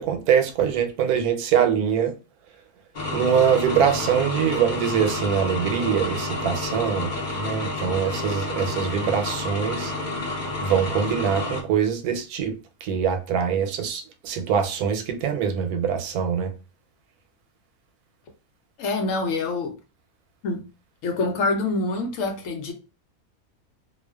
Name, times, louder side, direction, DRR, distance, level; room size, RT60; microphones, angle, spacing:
voice 1, 0.0-2.1 3.1-9.9 10.6-12.5 12.8-16.5, right 8 dB, 90° right, 1.1 m, -23 dB
sound 1, 2.9-11.6, left 2 dB, 45° left, 0.7 m, -29 dB
voice 2, 18.8-19.8 20.4-20.6 21.0-22.7, left 3 dB, 70° left, 0.9 m, -26 dB
2.4 x 2.3 x 2.2 m
omnidirectional pair, 1.5 m